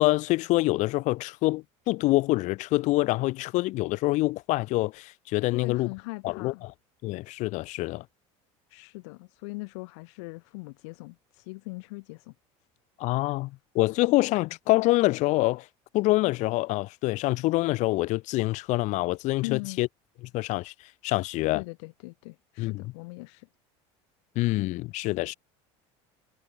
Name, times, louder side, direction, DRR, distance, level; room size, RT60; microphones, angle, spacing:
voice 1, 0.0-5.9 6.2-6.7 7.0-8.0 13.0-15.7 15.9-19.9 20.3-20.7 21.0-21.6 22.6-22.9 24.4-25.3, left 20 dB, 55° left, 0.5 m, -26 dB
voice 2, 5.5-6.6 8.7-12.3 19.4-19.8 21.5-23.5, left 28 dB, 80° left, 6.8 m, -40 dB
supercardioid pair, 120°, 15 cm